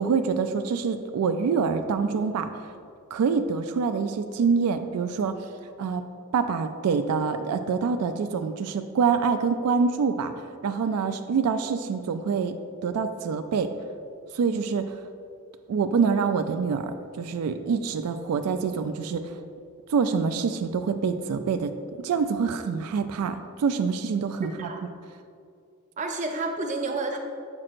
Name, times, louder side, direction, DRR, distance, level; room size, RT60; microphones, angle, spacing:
voice 1, 0.0-2.5 3.1-5.4 5.8-6.0 6.3-10.3 10.6-12.6 12.8-13.7 14.3-14.9 15.7-19.3 19.9-24.7, right 5 dB, 90° right, 8 dB, 0.3 m, -26 dB
voice 2, 24.4-24.8 26.0-27.2, right 3 dB, 35° right, 2 dB, 0.6 m, -30 dB
7.4 x 6.0 x 2.5 m, 2.4 s
head